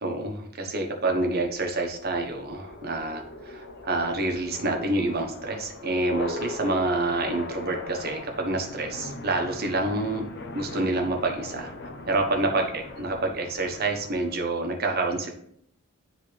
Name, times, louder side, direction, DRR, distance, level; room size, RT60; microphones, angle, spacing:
voice 1, 0.0-10.2 10.5-11.7 12.1-15.3, right 2 dB, 50° right, 2 dB, 1.2 m, -27 dB
sound 1, 1.3-14.4, left 2 dB, 55° left, 0.8 m, -40 dB
10.5 x 3.7 x 3.3 m, 0.69 s
head